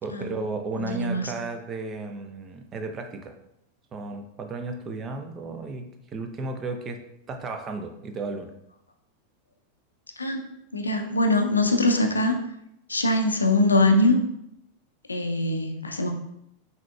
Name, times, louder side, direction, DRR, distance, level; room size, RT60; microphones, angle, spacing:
voice 1, 0.0-3.3 3.9-7.0 7.3-8.5, right 3 dB, 25° right, 6 dB, 0.5 m, -34 dB
voice 2, 0.8-1.2 10.2-10.4 10.7-12.4 12.9-14.2 15.1-16.1, left 2 dB, 80° left, 4 dB, 0.5 m, -22 dB
5.9 x 2.8 x 2.3 m, 0.78 s
figure-of-eight pair, 90°, 0 cm